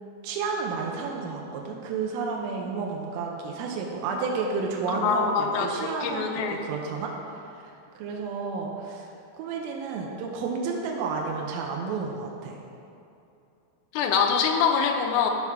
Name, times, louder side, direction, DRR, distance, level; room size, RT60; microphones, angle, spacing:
voice 1, 0.2-7.6 7.9-12.6, right 4 dB, 85° right, 0 dB, 3.5 m, -31 dB
voice 2, 4.9-6.6 13.9-15.3, left 6 dB, 85° left, 3 dB, 3.3 m, -24 dB
12.5 x 5.8 x 4.8 m, 2.7 s
omnidirectional pair, 5.9 m